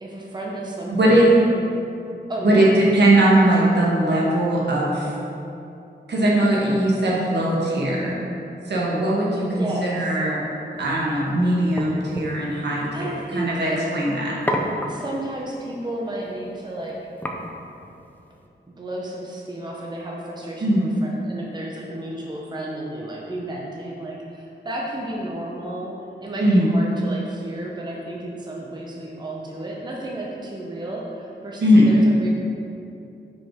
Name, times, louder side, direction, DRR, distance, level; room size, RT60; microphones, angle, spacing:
voice 1, 0.0-1.3 2.3-2.7 9.4-10.1 12.9-13.8 14.9-17.0 18.8-25.9 26.2-32.3, right 1 dB, 25° right, -3 dB, 0.7 m, -32 dB
voice 2, 0.9-1.3 2.1-2.2 2.4-5.1 6.1-8.2 8.7-10.4 10.8-14.4 20.6-20.9 26.4-26.7 31.6-31.9, right 1 dB, 70° right, -4 dB, 1.5 m, -19 dB
sound 1, 10.8-18.5, equal, 10° left, 0.5 m, -34 dB
6.1 x 5.1 x 5.0 m, 2.8 s
wide cardioid pair, 150°, 18 cm